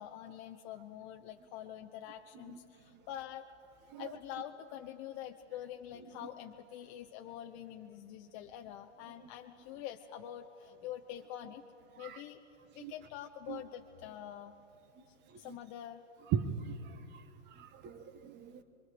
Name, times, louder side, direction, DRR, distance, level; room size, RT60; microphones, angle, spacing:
voice 1, 0.0-3.5 4.0-11.6 12.0-12.4 12.7-14.5 15.1-16.0, left 11 dB, 35° left, 0.9 m, -46 dB
voice 2, 15.3-15.6 16.3-18.6, right 8 dB, 30° right, 1.4 m, -40 dB
27.0 x 23.0 x 5.1 m
hypercardioid pair, 120°, 38 cm